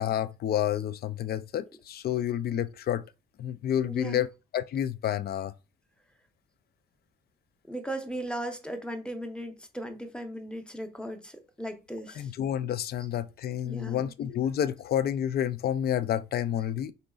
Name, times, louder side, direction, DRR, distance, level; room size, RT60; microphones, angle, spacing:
voice 1, 0.0-3.1 3.4-4.3 4.5-5.5 12.1-16.9, left 10 dB, 50° left, 0.4 m, -29 dB
voice 2, 3.8-4.3 7.7-12.3 13.6-14.1, right 1 dB, 5° left, 0.7 m, -37 dB
5.1 x 3.9 x 2.3 m
cardioid pair, 135°, 21 cm